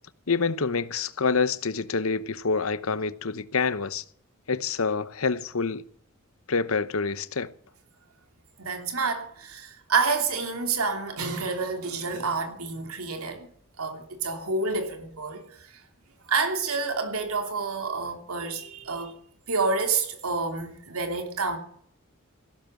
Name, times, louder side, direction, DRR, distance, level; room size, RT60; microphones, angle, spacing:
voice 1, 0.3-4.0 4.5-5.8 6.5-7.5, left 4 dB, 75° left, 0.9 m, -27 dB
voice 2, 8.6-13.5 13.8-15.8 16.3-19.1 19.5-21.6, right 4 dB, 85° right, 3.2 m, -28 dB
15.5 x 12.5 x 7.5 m
head